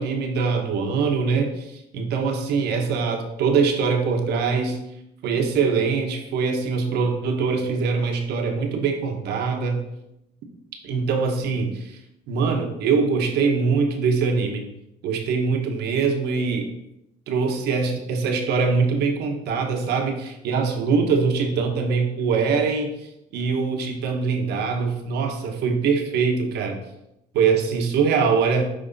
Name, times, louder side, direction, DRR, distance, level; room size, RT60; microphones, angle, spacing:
voice 1, 0.0-4.8 5.2-9.8 10.8-12.0 12.3-14.6 15.0-16.7 17.3-22.9 23.3-26.8 27.3-28.7, right 5 dB, 80° right, 4 dB, 1.2 m, -23 dB
9.2 x 3.4 x 4.1 m, 0.84 s
cardioid pair, 110°, 17 cm